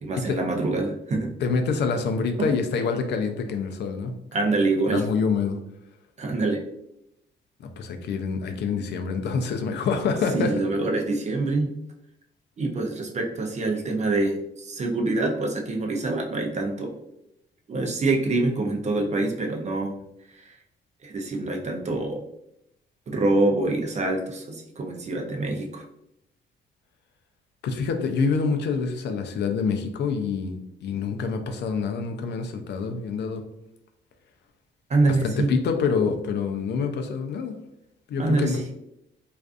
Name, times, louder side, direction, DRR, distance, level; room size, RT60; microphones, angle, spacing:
voice 1, 0.0-1.3 2.4-2.5 4.3-5.0 6.2-6.6 10.3-11.7 12.6-17.0 17.7-19.9 20.5-20.6 21.0-22.2 23.1-25.8 34.9-35.6 38.2-38.6, right 2 dB, 35° right, 2 dB, 0.5 m, -25 dB
voice 2, 1.4-4.1 4.9-5.6 7.6-10.5 27.6-33.4 35.2-37.5 38.1-38.6, left 5 dB, 60° left, 6 dB, 0.4 m, -26 dB
2.4 x 2.3 x 2.4 m, 0.82 s
cardioid pair, 90°, 20 cm